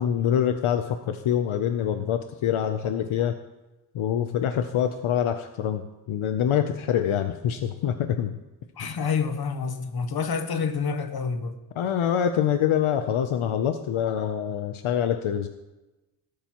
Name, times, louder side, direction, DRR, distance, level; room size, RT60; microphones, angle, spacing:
voice 1, 0.0-3.3 3.9-8.4 11.8-15.5, left 9 dB, 80° left, 7 dB, 0.7 m, -25 dB
voice 2, 8.8-11.6, left 5 dB, 50° left, 8 dB, 1.0 m, -28 dB
18.5 x 8.7 x 3.0 m, 1.1 s
wide cardioid pair, 170°, 48 cm